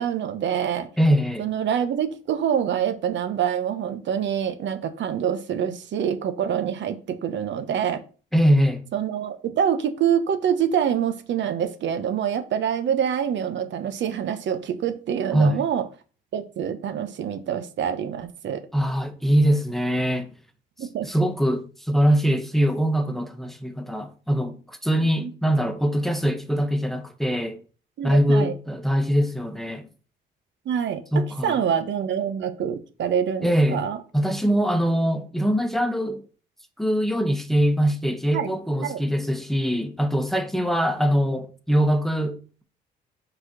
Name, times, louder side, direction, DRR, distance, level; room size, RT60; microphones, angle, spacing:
voice 1, 0.0-0.9 1.4-8.0 8.9-15.9 16.3-18.7 20.8-21.1 25.2-25.3 28.0-28.5 30.7-34.0 38.3-38.5 38.8-39.0, right 8 dB, 65° right, 1.0 m, -26 dB
voice 2, 1.0-1.5 8.3-8.8 15.3-15.6 18.7-20.3 21.0-27.6 28.0-29.9 31.1-31.6 33.4-33.8 34.1-36.2 36.8-42.6, equal, ahead, 1.1 m, -22 dB
5.3 x 4.2 x 6.0 m
cardioid pair, 90°, 20 cm